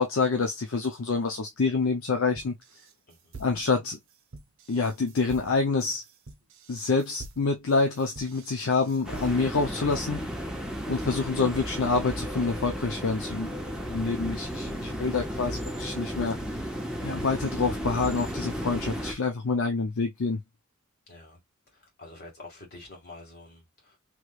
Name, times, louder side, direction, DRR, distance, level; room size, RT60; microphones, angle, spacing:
voice 1, 0.0-2.5 3.4-4.0 4.7-6.0 6.7-10.3 10.9-16.6 17.0-20.4, left 4 dB, 65° left, 0.5 m, -27 dB
sound 1, 2.4-9.7, right 3 dB, 60° right, 0.7 m, -47 dB
voice 2, 3.1-3.4 21.1-21.4 21.7-24.0, left 2 dB, 45° left, 1.9 m, -48 dB
sound 2, 9.0-19.1, equal, 5° right, 0.7 m, -34 dB
3.1 x 3.1 x 2.3 m
head